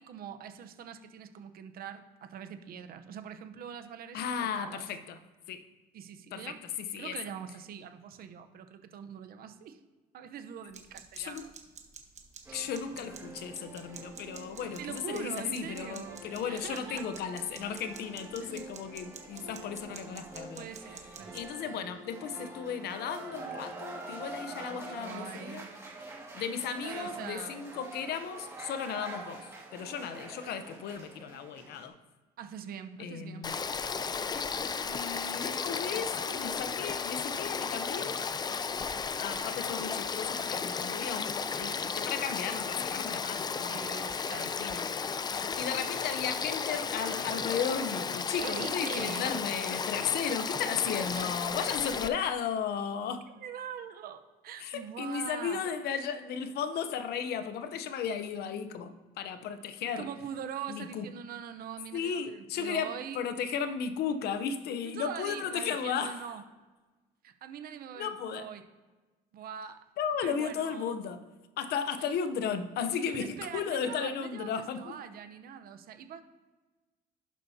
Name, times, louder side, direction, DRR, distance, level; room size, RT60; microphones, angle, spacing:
voice 1, 0.0-4.8 5.9-6.6 7.0-9.8 10.1-11.5 12.5-12.7 14.8-17.1 18.4-18.6 20.5-21.5 24.6-25.8 26.8-27.6 32.4-33.5 43.7-44.6 47.1-47.3 48.4-49.4 51.1-51.4 52.1-52.3 53.4-55.6 60.0-63.2 64.8-66.4 67.2-68.6 69.3-69.8 70.2-70.9 73.1-76.2, right 8 dB, 60° right, 9 dB, 0.8 m, -43 dB
voice 2, 4.1-5.2 5.5-5.6 6.3-7.2 11.2-11.5 12.5-20.7 21.3-25.7 26.3-31.9 33.0-33.6 34.9-38.2 39.2-43.8 44.3-44.8 45.6-53.3 54.6-60.1 60.7-61.0 61.9-66.3 68.0-68.5 70.0-71.2 71.6-74.9, left 7 dB, 70° left, 10 dB, 0.8 m, -35 dB
sound 1, 10.7-21.5, right 6 dB, 45° right, 1.2 m, -51 dB
sound 2, 12.5-31.9, right 2 dB, 15° right, 2.1 m, -46 dB
Frog / Stream, 33.4-52.1, left 5 dB, 25° left, 0.4 m, -34 dB
11.0 x 7.5 x 2.8 m, 1.2 s
cardioid pair, 110°, 17 cm